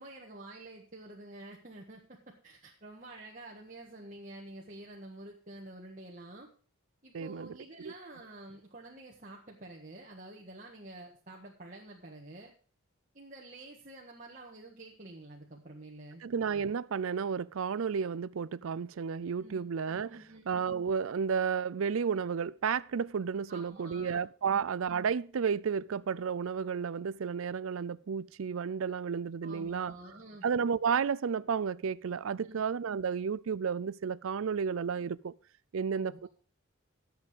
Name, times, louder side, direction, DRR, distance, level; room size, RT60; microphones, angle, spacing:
voice 1, 0.0-2.2 2.4-6.5 7.0-12.5 13.1-16.2 19.4-19.6 20.1-20.5 23.5-24.6 29.4-30.4 32.4-32.6 35.9-36.3, right 2 dB, 35° right, 1.6 m, -49 dB
voice 2, 7.1-7.5 7.8-7.9 16.2-20.2 20.5-29.9 30.4-35.3 35.7-36.3, right 6 dB, 70° right, 0.4 m, -32 dB
11.5 x 7.9 x 5.2 m
head